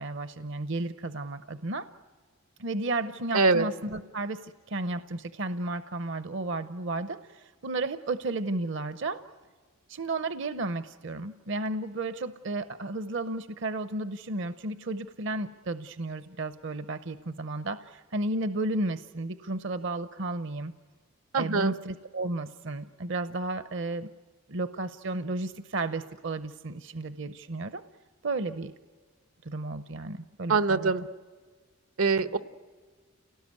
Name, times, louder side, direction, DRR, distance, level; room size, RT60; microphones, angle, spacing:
voice 1, 0.0-1.9 2.6-9.2 9.9-20.7 21.4-24.1 24.5-27.8 28.2-28.7 29.4-30.9, right 2 dB, 55° right, 12 dB, 0.7 m, -33 dB
voice 2, 3.3-3.6 21.3-21.7 30.5-31.1 32.0-32.4, right 4 dB, 85° right, 11 dB, 1.1 m, -23 dB
29.0 x 18.5 x 9.4 m, 1.5 s
head